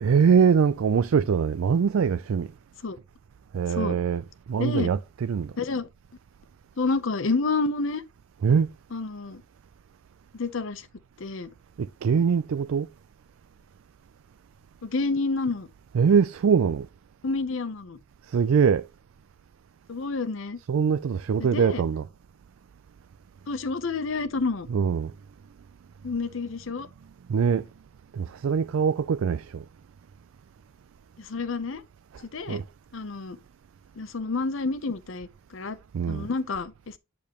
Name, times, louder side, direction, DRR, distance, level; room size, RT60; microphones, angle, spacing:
voice 1, 0.0-2.5 3.5-5.5 8.4-8.7 11.8-12.9 15.9-16.9 18.3-18.9 20.7-22.1 24.7-25.1 27.3-27.7 28.1-29.6 32.1-32.2 32.5-32.6 35.9-36.3, right 6 dB, 80° right, 0.4 m, -23 dB
voice 2, 4.6-4.9 5.6-5.9 6.8-8.0 8.9-9.4 10.3-10.9 11.2-11.5 14.8-15.7 17.2-18.0 19.9-20.6 21.4-21.8 23.5-24.7 26.0-26.9 31.2-31.8 32.3-32.6 32.9-33.4 34.0-35.8 36.1-37.0, left 3 dB, 65° left, 0.7 m, -29 dB
8.6 x 5.2 x 3.0 m
head